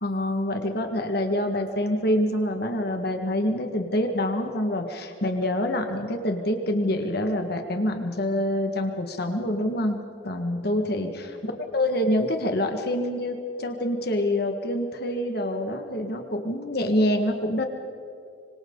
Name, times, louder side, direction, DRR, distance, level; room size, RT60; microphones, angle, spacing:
voice 1, 0.0-10.0 10.2-17.6, left 1 dB, 60° left, 5 dB, 1.9 m, -26 dB
26.0 x 26.0 x 4.0 m, 2.5 s
head